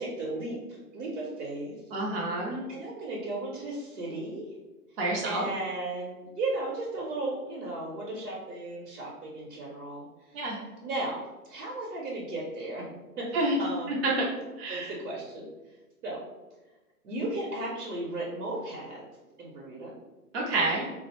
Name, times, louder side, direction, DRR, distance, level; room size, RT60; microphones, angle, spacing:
voice 1, 0.0-1.7 2.7-4.4 4.9-5.0 5.2-12.9 13.2-14.0 14.7-15.4 16.0-16.2 17.0-19.0 19.4-19.9, right 2 dB, 75° right, -4 dB, 0.8 m, -35 dB
voice 2, 1.9-2.6 5.0-5.4 10.3-10.6 13.3-13.6 13.9-14.3 14.6-14.9 20.3-20.9, right 2 dB, 40° right, -4 dB, 0.4 m, -28 dB
2.4 x 2.0 x 2.9 m, 1.1 s
hypercardioid pair, 150°, 47 cm